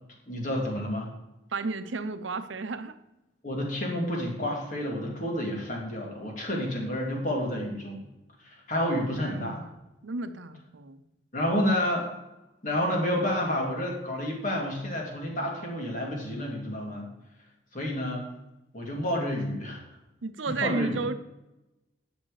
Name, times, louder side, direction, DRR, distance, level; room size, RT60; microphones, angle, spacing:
voice 1, 0.3-1.1 3.4-8.0 8.4-9.6 11.3-12.1 12.6-17.1 17.7-18.3 18.7-19.8 20.5-21.0, left 1 dB, 45° left, -1 dB, 2.4 m, -29 dB
voice 2, 1.5-2.9 9.2-9.7 10.0-11.0 20.2-21.1, right 3 dB, 90° right, 11 dB, 0.7 m, -33 dB
9.9 x 6.2 x 4.9 m, 0.95 s
head